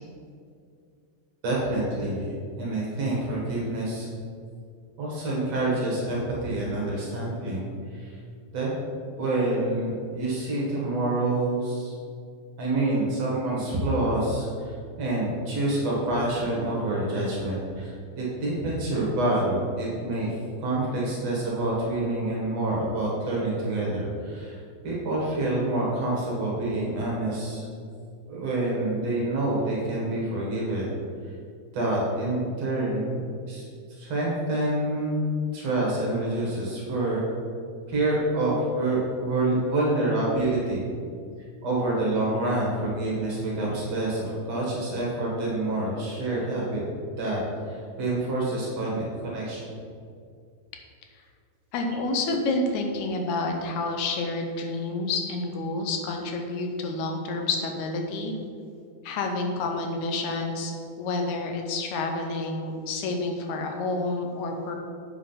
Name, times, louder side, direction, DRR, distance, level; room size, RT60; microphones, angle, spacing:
voice 1, 1.4-4.1 5.0-7.6 7.9-8.2 8.5-8.7 9.2-11.9 12.6-24.6 24.8-27.7 28.3-30.8 31.2-31.3 31.7-33.2 33.5-35.2 35.5-37.3 37.9-40.8 41.6-46.8 47.2-47.4 47.7-49.6, right 2 dB, 55° right, -5 dB, 2.7 m, -27 dB
voice 2, 51.7-58.3 59.0-60.7 61.0-64.8, left 3 dB, 75° left, 3 dB, 2.1 m, -29 dB
8.1 x 4.9 x 5.7 m, 2.3 s
omnidirectional pair, 3.6 m